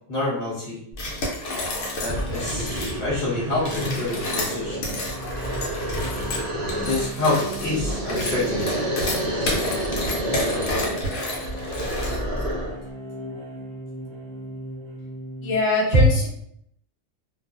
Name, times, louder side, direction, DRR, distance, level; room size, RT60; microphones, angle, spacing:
voice 1, 0.1-0.8 2.0-5.1 6.6-8.8 15.9-16.0, left 1 dB, 30° left, -7 dB, 1.1 m, -26 dB
sound 1, 0.9-3.0 3.6-12.4, left 1 dB, 90° left, 1.1 m, -30 dB
sound 2, 1.5-15.6, right 1 dB, 60° right, 0.7 m, -39 dB
sound 3, 2.0-12.8, equal, 75° right, 0.3 m, -29 dB
voice 2, 15.4-16.3, left 3 dB, 70° left, -2 dB, 1.1 m, -23 dB
2.4 x 2.3 x 2.4 m, 0.69 s
omnidirectional pair, 1.4 m